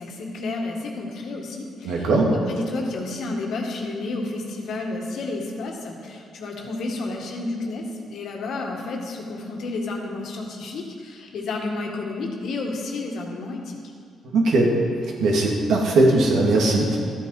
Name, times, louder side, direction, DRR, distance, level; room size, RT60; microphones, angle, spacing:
voice 1, 0.0-2.1 2.5-13.8, left 2 dB, 70° left, 1 dB, 1.9 m, -31 dB
voice 2, 1.8-2.3 14.3-14.7 15.2-17.0, right 2 dB, 75° right, -1 dB, 2.3 m, -19 dB
13.0 x 8.9 x 4.9 m, 2.3 s
cardioid pair, 90°, 0 cm